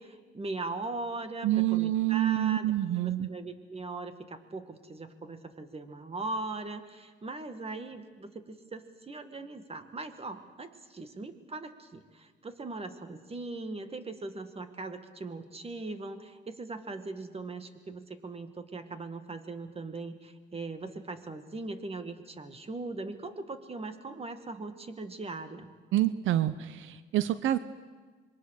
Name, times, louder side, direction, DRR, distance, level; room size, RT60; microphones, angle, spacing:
voice 1, 0.0-2.7 3.0-25.7, right 3 dB, 30° right, 9 dB, 2.1 m, -40 dB
voice 2, 1.4-3.3 25.9-27.6, right 13 dB, 80° right, 14 dB, 0.7 m, -27 dB
26.5 x 22.5 x 6.6 m, 1.4 s
cardioid pair, 90°, 20 cm